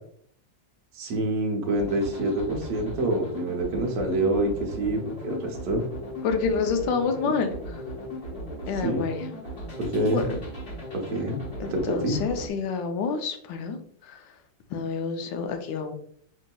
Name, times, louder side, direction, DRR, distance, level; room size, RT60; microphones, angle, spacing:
voice 1, 0.9-5.8 8.8-9.0 9.8-10.3 10.9-11.4 11.7-12.2, right 1 dB, 60° right, 1 dB, 1.2 m, -26 dB
sound 1, 1.7-12.5, equal, 35° left, 1.1 m, -37 dB
voice 2, 6.2-7.5 8.7-9.3 10.0-10.3 11.6-14.2 14.7-15.9, left 5 dB, 80° left, 6 dB, 1.3 m, -28 dB
5.9 x 2.8 x 2.2 m, 0.63 s
omnidirectional pair, 2.0 m